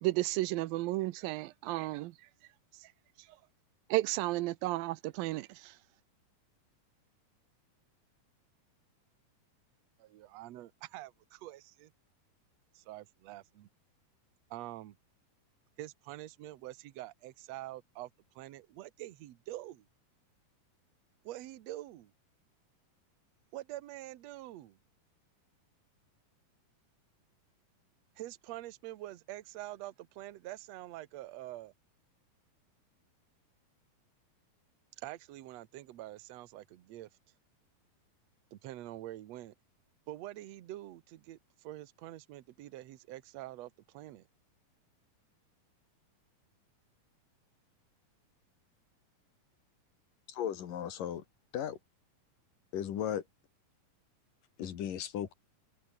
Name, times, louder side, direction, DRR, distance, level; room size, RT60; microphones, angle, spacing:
voice 1, 0.0-2.1 3.9-5.7, right 18 dB, 85° right, 2.4 m, -33 dB
voice 2, 10.0-11.9 12.7-13.7 14.5-15.0 15.8-18.1 18.4-19.9 21.2-22.1 23.5-24.8 28.2-31.7 35.0-37.1 38.5-39.5 40.1-44.3, right 15 dB, 65° right, 1.9 m, -46 dB
voice 3, 50.3-51.2 51.5-51.8 52.7-53.2 54.6-55.3, left 9 dB, 65° left, 3.6 m, -36 dB
omnidirectional pair, 4.2 m